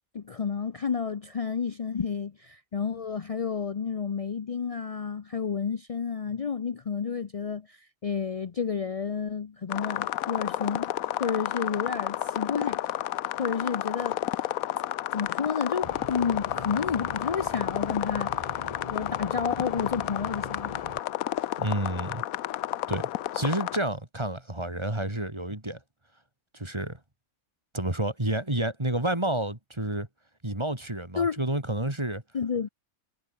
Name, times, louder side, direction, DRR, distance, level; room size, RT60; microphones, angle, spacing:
voice 1, 0.1-10.9 11.2-12.8 13.4-14.2 15.1-18.4 18.9-20.7 31.2-31.4 32.3-32.7, left 6 dB, 45° left, 0.4 m, -30 dB
sound 1, 9.7-23.8, left 13 dB, 75° left, 1.1 m, -31 dB
sound 2, 15.8-21.0, left 1 dB, 25° left, 4.9 m, -42 dB
voice 2, 21.6-22.2 22.9-23.1 23.3-25.8 26.5-27.0 27.7-30.1 30.4-32.2, right 1 dB, 20° right, 3.1 m, -29 dB
omnidirectional pair, 1.5 m